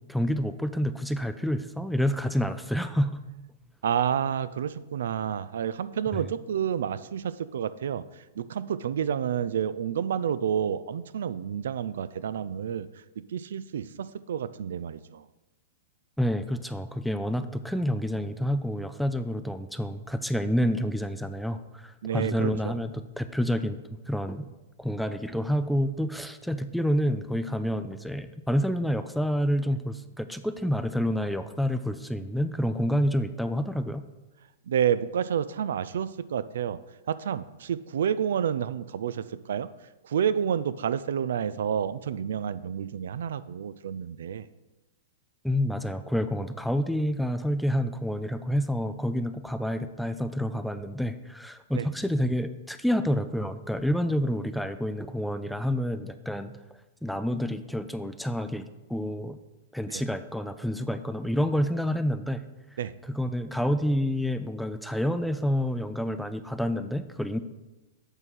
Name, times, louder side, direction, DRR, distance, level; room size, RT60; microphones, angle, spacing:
voice 1, 0.1-3.2 6.1-6.2 16.2-23.8 24.1-24.5 24.8-34.1 45.4-56.5 57.0-59.4 59.7-62.4 63.1-67.4, equal, ahead, 10 dB, 0.3 m, -28 dB
voice 2, 3.8-8.1 8.4-12.9 13.2-15.3 22.0-22.8 34.7-36.8 37.1-39.7 40.0-44.5 51.8-51.9 59.9-60.0 62.8-62.9, right 8 dB, 80° right, 16 dB, 0.3 m, -29 dB
8.0 x 3.7 x 6.2 m, 1.1 s
hypercardioid pair, 145°, 0 cm